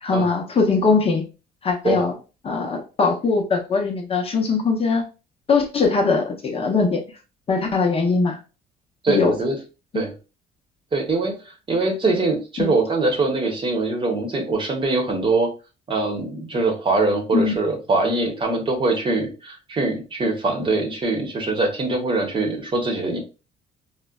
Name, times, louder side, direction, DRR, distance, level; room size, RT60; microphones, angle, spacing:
voice 1, 0.0-1.2 1.6-2.2 2.4-5.0 5.5-7.0 7.5-8.4 9.1-9.4 9.9-10.0 12.6-12.7 17.3-17.6, left 4 dB, 35° left, 1 dB, 0.7 m, -21 dB
voice 2, 9.0-9.5 9.9-10.1 10.9-15.5 15.9-23.2, right 3 dB, 30° right, 3 dB, 0.9 m, -23 dB
3.8 x 2.1 x 2.2 m, 0.32 s
cardioid pair, 110°, 17 cm